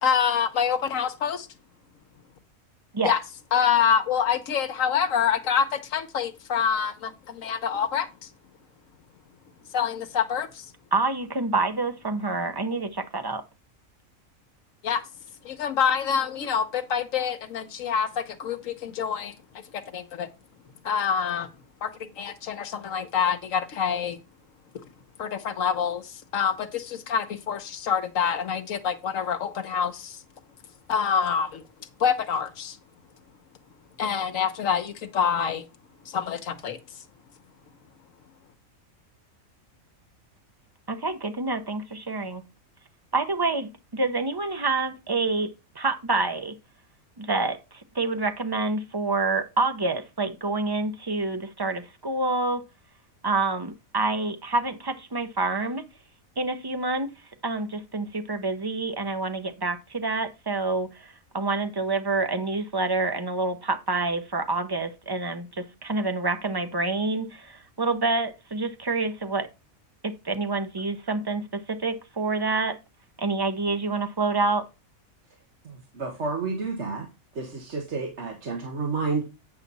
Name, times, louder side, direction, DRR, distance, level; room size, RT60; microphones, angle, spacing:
voice 1, 0.0-1.5 3.0-3.2 3.5-8.3 9.7-10.7 14.8-15.0 15.4-19.3 19.7-20.3 20.8-21.5 21.8-24.2 25.2-30.2 30.9-31.6 32.0-32.8 34.0-35.6 36.1-36.8, left 7 dB, 70° left, 1.3 m, -26 dB
voice 2, 10.9-13.4 40.9-42.4 43.1-46.5 47.2-52.6 53.2-55.8 56.4-57.1 57.4-69.5 70.0-72.8 73.2-74.7, right 3 dB, 25° right, 0.5 m, -27 dB
voice 3, 75.6-77.1 77.3-79.2, right 4 dB, 55° right, 1.7 m, -30 dB
8.8 x 5.7 x 4.1 m
omnidirectional pair, 1.4 m